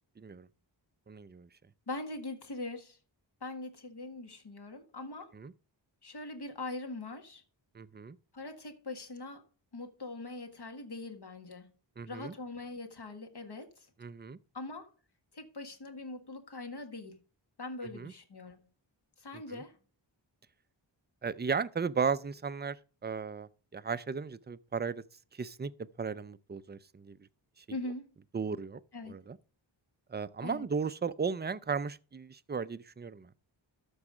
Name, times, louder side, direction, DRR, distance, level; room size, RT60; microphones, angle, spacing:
voice 1, 0.2-0.5 1.1-1.5 5.3-5.5 7.7-8.2 12.0-12.3 14.0-14.4 17.9-18.1 19.5-19.6 21.2-22.8 23.0-25.0 25.4-25.7 26.0-27.2 28.3-28.8 29.1-29.4 30.1-33.3, right 5 dB, 25° right, 0.5 m, -35 dB
voice 2, 1.9-3.0 3.4-5.3 6.0-7.4 8.3-9.4 9.7-11.7 12.1-13.9 14.5-14.9 15.3-17.2 17.6-18.6 19.2-19.8 27.7-28.0 28.9-29.2 30.4-30.7, left 2 dB, 60° left, 1.8 m, -42 dB
13.0 x 5.5 x 4.9 m
wide cardioid pair, 95°, 46 cm